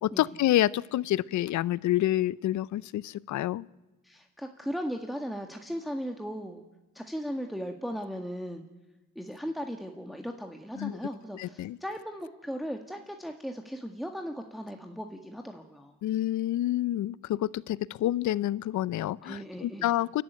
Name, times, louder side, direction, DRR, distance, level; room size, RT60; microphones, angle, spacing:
voice 1, 0.0-3.6 10.8-10.9 11.3-11.8 16.0-20.2, left 14 dB, 70° left, 21 dB, 0.6 m, -28 dB
voice 2, 4.0-6.6 7.0-8.6 9.2-15.9 19.2-19.9, equal, ahead, 3 dB, 1.8 m, -37 dB
28.5 x 12.0 x 9.3 m, 1.1 s
cardioid pair, 90°, 30 cm